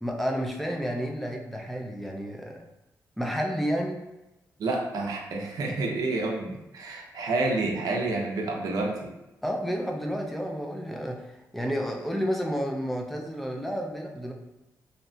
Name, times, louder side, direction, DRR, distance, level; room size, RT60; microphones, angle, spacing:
voice 1, 0.0-2.6 3.2-4.0 9.4-14.3, equal, ahead, 1 dB, 0.3 m, -31 dB
voice 2, 4.6-9.1, right 2 dB, 65° right, 0 dB, 0.5 m, -29 dB
2.7 x 2.1 x 2.6 m, 0.97 s
wide cardioid pair, 145°, 7 cm